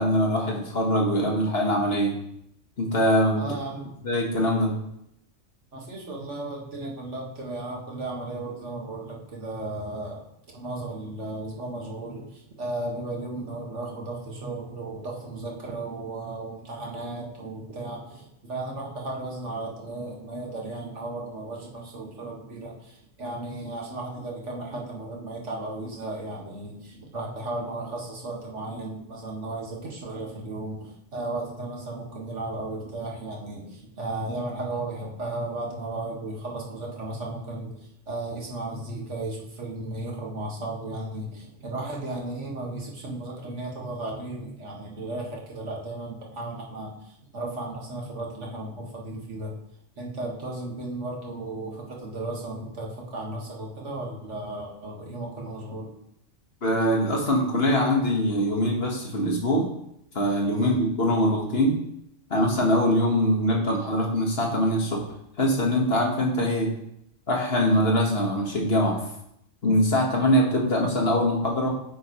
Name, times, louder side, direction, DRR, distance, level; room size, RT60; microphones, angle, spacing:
voice 1, 0.0-2.1 2.8-3.4 4.0-4.7 56.6-59.7 60.1-61.8 62.3-65.0 65.4-66.7 67.3-69.0 69.6-71.7, equal, 50° left, -1 dB, 1.8 m, -23 dB
voice 2, 3.4-3.9 5.7-10.2 10.5-49.5 50.0-55.9 60.5-60.8, right 2 dB, 65° right, -2 dB, 2.1 m, -35 dB
9.6 x 7.4 x 3.2 m, 0.76 s
omnidirectional pair, 1.3 m